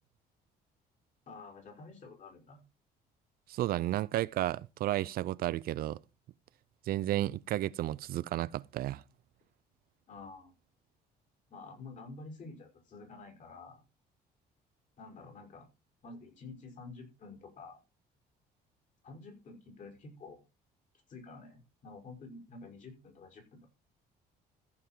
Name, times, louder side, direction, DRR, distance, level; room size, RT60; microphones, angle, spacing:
voice 1, 1.3-2.6 10.1-10.5 11.5-13.8 15.0-15.7 16.0-17.8 19.0-20.4 21.1-23.7, left 3 dB, 50° left, 5.5 m, -49 dB
voice 2, 3.5-6.0 6.9-9.0, right 14 dB, 65° right, 0.5 m, -32 dB
14.5 x 5.9 x 4.4 m
cardioid pair, 110°, 17 cm